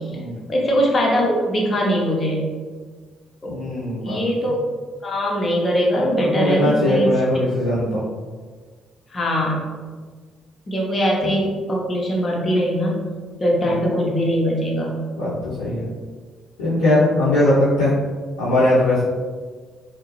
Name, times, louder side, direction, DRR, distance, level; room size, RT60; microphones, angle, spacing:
voice 1, 0.5-2.4 3.4-3.5 4.0-4.6 5.0-7.1 9.1-9.7 10.7-13.0 13.4-15.0, equal, 35° left, -2 dB, 0.7 m, -21 dB
voice 2, 3.5-4.2 6.1-8.0 13.6-13.8 15.2-15.8 16.6-18.0 18.4-19.0, left 1 dB, 75° left, -12 dB, 0.7 m, -20 dB
2.6 x 2.1 x 2.9 m, 1.5 s
figure-of-eight pair, 45°, 0 cm